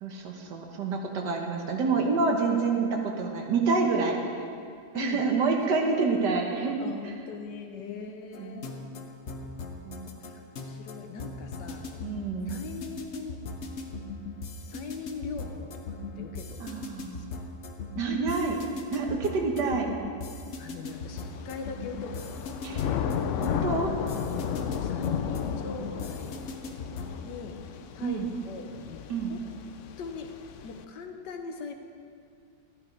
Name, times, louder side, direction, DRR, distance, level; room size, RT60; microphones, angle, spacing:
voice 1, 0.0-4.2 4.9-6.8 8.0-8.1 8.4-8.6 9.9-10.2 12.0-12.6 16.6-17.3 18.0-18.6 18.9-19.9 22.6-22.8 23.4-23.9 28.0-28.3 29.1-29.3, right 4 dB, 85° right, 1 dB, 1.8 m, -28 dB
voice 2, 4.9-5.2 5.6-6.0 6.8-8.8 10.2-12.0 12.5-13.4 14.6-16.9 17.1-17.3 20.6-23.0 24.3-26.5 27.2-27.6 27.9-29.0 29.3-29.4 30.0-30.3 30.6-31.7, left 5 dB, 90° left, 5 dB, 1.6 m, -41 dB
sound 1, 8.3-27.2, left 3 dB, 50° left, 1.0 m, -39 dB
Thunder / Rain, 20.9-30.8, left 8 dB, 70° left, 0.7 m, -34 dB
12.0 x 10.5 x 4.6 m, 2.4 s
omnidirectional pair, 1.8 m